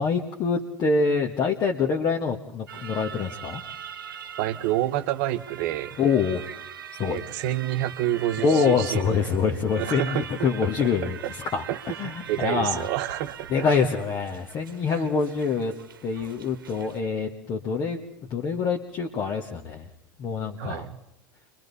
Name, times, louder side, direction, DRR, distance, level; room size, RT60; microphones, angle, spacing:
voice 1, 0.0-3.6 6.0-6.4 7.0-7.2 8.4-11.2 11.5-11.6 12.0-12.8 13.5-15.7 16.0-18.0 18.3-19.8 20.2-20.9, left 5 dB, 40° left, 1 dB, 1.5 m, -25 dB
sound 1, 2.7-17.0, right 8 dB, 85° right, 1.0 m, -42 dB
voice 2, 4.4-6.0 7.0-9.4 9.8-10.3 10.8-11.3 11.7-13.5 13.8-13.9 14.9-15.1 20.6-21.0, right 13 dB, 60° right, 9 dB, 1.0 m, -29 dB
29.5 x 23.5 x 4.1 m, 0.86 s
hypercardioid pair, 90°, 11 cm